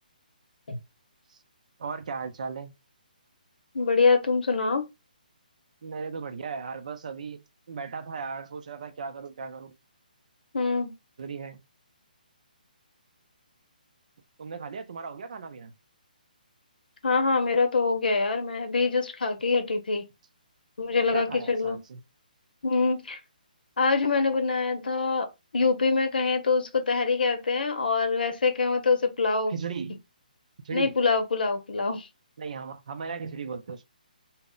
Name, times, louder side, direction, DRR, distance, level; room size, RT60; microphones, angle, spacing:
voice 1, 1.8-2.7 5.8-7.4 7.7-9.7 11.2-11.6 14.4-15.7 21.1-22.0 29.5-30.0 30.6-30.9 32.4-33.8, right 5 dB, 50° right, 0.4 m, -36 dB
voice 2, 3.7-4.8 10.5-10.9 17.0-20.0 20.8-21.8 22.6-23.2 23.8-25.3 25.5-29.5 30.7-32.1, left 4 dB, 75° left, 0.7 m, -24 dB
2.0 x 2.0 x 3.6 m
hypercardioid pair, 165°, 5 cm